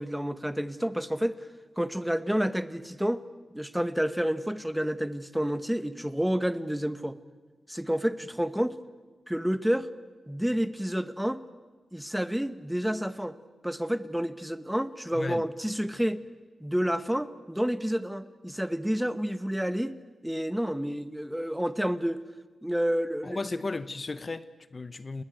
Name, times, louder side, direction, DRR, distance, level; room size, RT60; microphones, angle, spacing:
voice 1, 0.0-1.4 1.8-3.2 3.5-7.2 7.7-8.7 9.3-9.9 10.3-11.4 11.9-13.3 13.6-16.2 16.6-19.9 20.2-22.2 22.6-23.6, equal, 5° right, 0.9 m, -29 dB
voice 2, 23.2-25.2, left 3 dB, 30° left, 0.8 m, -35 dB
30.0 x 20.5 x 9.1 m
wide cardioid pair, 150°, 0 cm